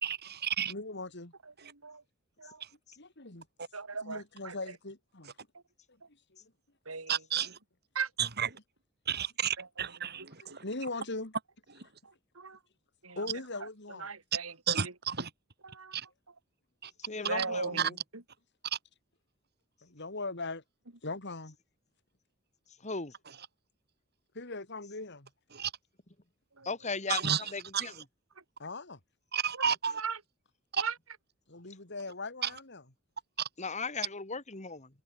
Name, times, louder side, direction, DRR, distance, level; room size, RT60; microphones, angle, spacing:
voice 1, 0.0-0.7 7.1-7.5 8.2-8.5 9.1-10.6 14.7-15.3 15.9-16.1 16.8-16.9 17.8-17.9 23.3-23.5 25.5-25.7 27.1-28.0 29.3-30.0 30.7-30.8 32.4-32.5 33.4-33.5, right 8 dB, 50° right, 3.8 m, -32 dB
voice 2, 0.7-1.3 3.0-3.5 4.0-5.3 6.4-6.5 10.4-11.4 13.2-14.1 17.1-17.3 17.6-17.8 19.8-20.6 21.0-21.6 24.4-25.3 28.6-29.0 31.5-32.8, left 3 dB, 55° left, 3.4 m, -40 dB
voice 3, 1.4-2.0 2.4-2.6 3.7-4.8 5.5-5.6 6.9-7.5 8.0-8.1 8.4-8.5 9.6-9.9 10.5-10.6 12.0-12.6 13.0-13.3 13.6-14.6 14.8-14.9 15.6-16.0 16.3-16.4 17.3-18.2 26.6-26.8 28.4-28.5 29.5-29.7 30.0-30.2 30.8-31.0, right 5 dB, 80° right, 3.4 m, -39 dB
voice 4, 17.1-17.7 22.8-23.1 26.7-27.2 27.5-27.9 33.6-34.9, left 4 dB, 35° left, 2.9 m, -36 dB
head